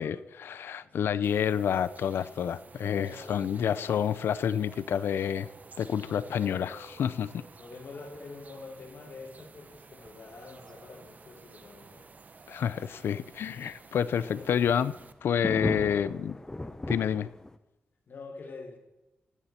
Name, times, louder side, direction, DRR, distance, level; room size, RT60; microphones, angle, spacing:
voice 1, 0.0-5.5 5.8-7.4 12.5-14.9 15.2-16.3 16.9-17.3, left 8 dB, 85° left, 16 dB, 0.5 m, -29 dB
voice 2, 0.8-1.2 2.8-4.2 6.4-6.7 7.6-12.1 14.1-14.7 15.7-16.1 18.1-18.8, left 3 dB, 60° left, 3 dB, 2.8 m, -47 dB
sound 1, 1.2-15.1, right 4 dB, 45° right, 1.0 m, -52 dB
sound 2, 14.3-17.6, left 1 dB, 15° left, 0.9 m, -36 dB
15.5 x 12.0 x 4.3 m, 0.98 s
cardioid pair, 80°, 4 cm